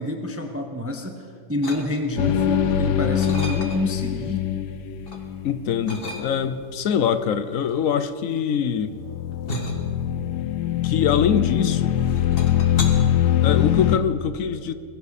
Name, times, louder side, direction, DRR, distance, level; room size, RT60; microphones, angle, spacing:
voice 1, 0.0-4.4, left 1 dB, 10° right, 4 dB, 0.8 m, -28 dB
sound 1, 1.6-2.3 2.7-4.0 4.5-5.2 5.8-6.7 7.5-11.6 12.0-12.8, left 1 dB, 35° left, 1.6 m, -35 dB
sound 2, 2.2-6.4 8.9-14.0, left 10 dB, 90° left, 1.3 m, -23 dB
voice 2, 5.4-8.9 10.8-12.0 13.4-14.7, left 8 dB, 65° left, 12 dB, 0.9 m, -23 dB
20.5 x 16.0 x 4.2 m, 2.3 s
omnidirectional pair, 1.7 m